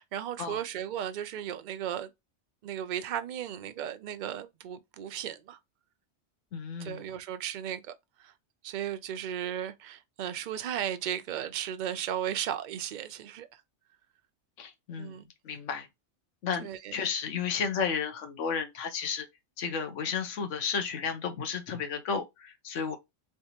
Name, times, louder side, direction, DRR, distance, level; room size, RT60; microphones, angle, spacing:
voice 1, 0.0-2.1 2.6-5.6 6.8-7.9 8.2-8.3 8.6-13.5 15.0-15.3 16.6-17.0, right 10 dB, 65° right, 0.5 m, -35 dB
voice 2, 6.5-7.1 14.6-15.2 15.4-15.9 16.4-19.3 19.6-23.0, left 6 dB, 75° left, 1.2 m, -33 dB
3.6 x 3.4 x 2.8 m
omnidirectional pair, 1.3 m